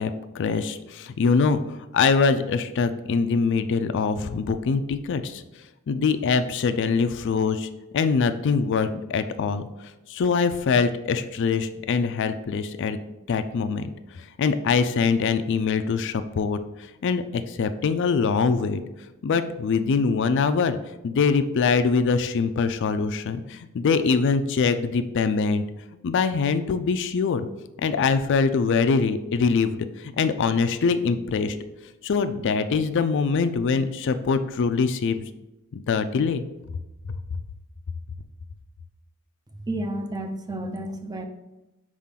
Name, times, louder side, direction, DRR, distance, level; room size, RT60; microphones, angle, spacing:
voice 1, 0.0-5.4 5.9-13.0 13.3-13.9 14.2-18.8 19.2-20.8 21.0-25.6 26.0-27.5 27.8-31.6 32.0-35.3 35.7-36.4 37.1-37.2, left 5 dB, 60° left, 11 dB, 0.4 m, -23 dB
voice 2, 39.5-41.3, right 1 dB, 20° right, 6 dB, 0.5 m, -31 dB
4.9 x 3.7 x 5.7 m, 0.99 s
head